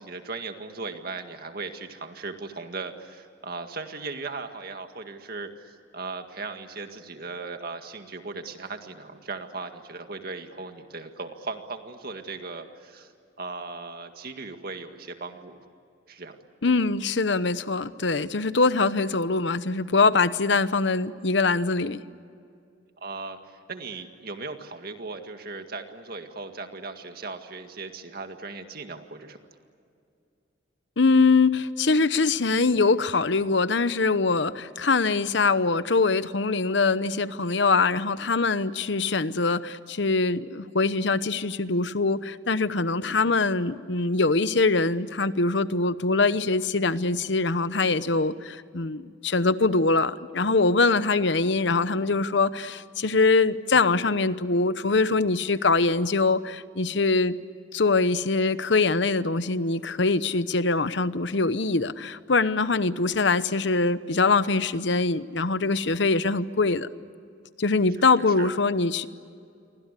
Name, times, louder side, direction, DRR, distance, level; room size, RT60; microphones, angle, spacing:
voice 1, 0.0-13.1 13.4-15.6 16.1-16.4 23.0-29.4 68.0-68.5, right 3 dB, 50° right, 6 dB, 2.0 m, -38 dB
voice 2, 16.6-22.0 31.0-57.4 57.7-66.9 67.6-69.1, left 3 dB, 65° left, 14 dB, 1.0 m, -23 dB
29.0 x 24.0 x 8.4 m, 2.4 s
head